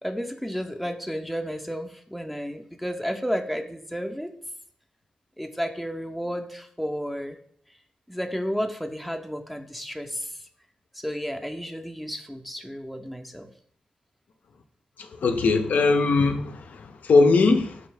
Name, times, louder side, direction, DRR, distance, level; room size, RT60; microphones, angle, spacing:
voice 1, 0.0-4.3 5.4-7.4 8.1-10.4 10.9-13.5, equal, ahead, 0.4 m, -32 dB
voice 2, 15.2-17.8, left 3 dB, 75° left, 0.3 m, -20 dB
3.9 x 2.7 x 3.2 m
cardioid pair, 60°, 3 cm